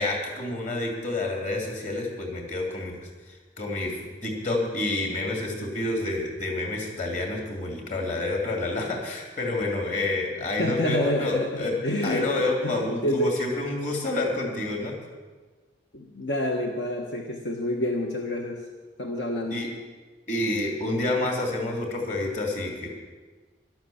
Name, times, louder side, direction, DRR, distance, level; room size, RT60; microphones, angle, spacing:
voice 1, 0.0-11.7 12.0-14.9 19.5-19.7 20.3-22.9, left 2 dB, 40° left, 1 dB, 2.8 m, -29 dB
voice 2, 10.4-13.4 15.9-18.6 19.0-19.6, left 1 dB, 70° left, 1 dB, 1.3 m, -28 dB
12.0 x 12.0 x 7.2 m, 1.4 s
head